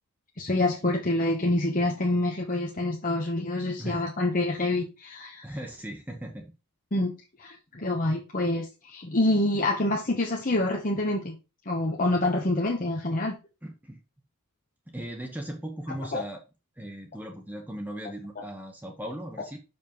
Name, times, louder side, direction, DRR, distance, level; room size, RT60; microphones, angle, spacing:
voice 1, 0.4-5.5 6.9-7.1 7.4-11.4 11.7-13.4 16.1-16.2 18.4-18.5, left 2 dB, 40° left, 0 dB, 1.1 m, -26 dB
voice 2, 5.4-6.5 13.6-14.0 14.9-16.4 16.8-19.6, right 1 dB, 10° right, 2 dB, 1.0 m, -38 dB
6.2 x 5.4 x 5.3 m, 0.30 s
head